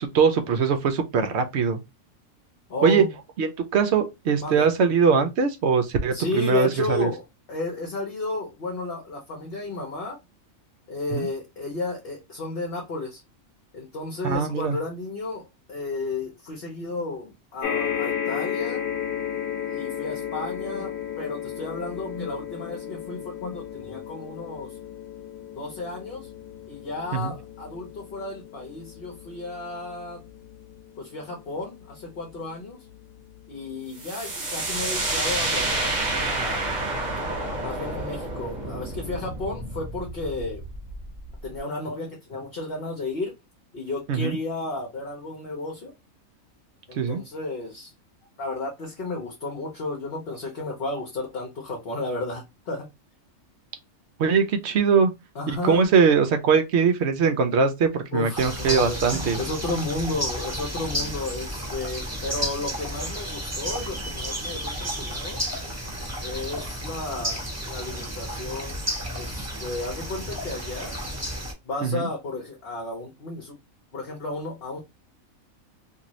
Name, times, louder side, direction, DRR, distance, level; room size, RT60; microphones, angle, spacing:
voice 1, 0.0-1.8 2.8-3.0 3.4-7.1 11.1-11.3 14.2-14.8 27.1-27.3 44.1-44.4 46.9-47.2 54.2-55.1 55.5-59.4 71.8-72.1, right 5 dB, 65° right, 0.8 m, -21 dB
voice 2, 2.7-3.1 4.4-4.7 6.1-10.2 10.9-13.2 13.7-15.4 15.7-18.8 19.7-24.8 25.6-26.3 26.7-30.2 31.0-32.8 33.5-36.8 37.6-40.6 41.4-43.3 43.7-45.9 46.9-47.9 48.4-52.9 55.3-55.8 58.1-65.4 66.2-68.8 69.1-70.9 71.6-73.6 73.9-74.8, left 2 dB, 50° left, 1.0 m, -33 dB
sound 1, 17.6-32.2 32.9-33.0 33.3-33.4, left 9 dB, 85° left, 1.0 m, -34 dB
sound 2, 34.0-41.6, right 2 dB, 35° right, 1.0 m, -29 dB
sound 3, 58.3-71.5, equal, 15° right, 0.9 m, -32 dB
2.6 x 2.6 x 2.9 m
omnidirectional pair, 1.4 m